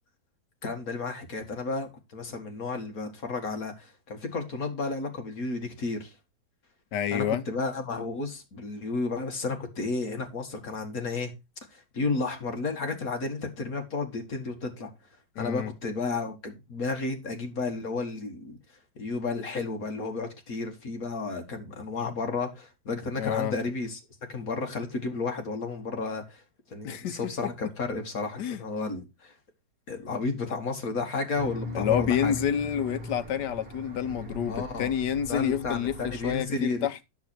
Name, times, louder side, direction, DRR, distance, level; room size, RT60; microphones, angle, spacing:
voice 1, 0.6-6.2 7.1-11.3 11.7-14.9 15.4-18.6 19.0-26.4 26.7-29.3 29.9-32.3 34.5-34.9 35.3-36.9, left 3 dB, 50° left, 2.2 m, -32 dB
voice 2, 6.9-7.4 15.4-15.7 23.2-23.5 26.8-27.2 28.4-28.6 31.7-37.0, left 9 dB, 70° left, 1.4 m, -28 dB
sound 1, 31.3-36.4, left 1 dB, 30° right, 2.0 m, -39 dB
9.5 x 6.8 x 4.4 m
omnidirectional pair, 2.0 m